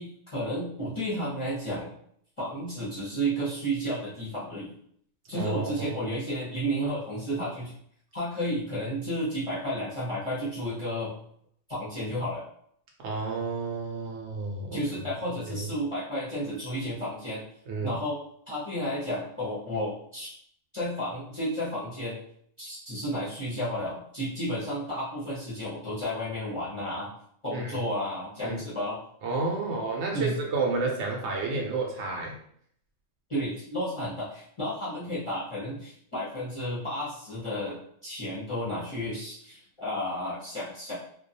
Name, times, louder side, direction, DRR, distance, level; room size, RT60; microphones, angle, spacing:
voice 1, 0.0-1.9 2.4-4.7 5.3-7.7 8.1-11.1 11.7-12.4 14.7-17.4 17.8-18.2 18.5-20.3 20.7-22.2 22.6-27.1 27.4-29.0 30.1-30.3 33.3-41.0, equal, 35° left, -10 dB, 0.6 m, -32 dB
voice 2, 5.3-6.0 13.0-14.8 17.7-17.9 27.5-27.8 28.4-28.6 29.2-32.3, right 3 dB, 70° right, -1 dB, 0.8 m, -30 dB
2.3 x 2.2 x 2.6 m, 0.66 s
omnidirectional pair, 1.3 m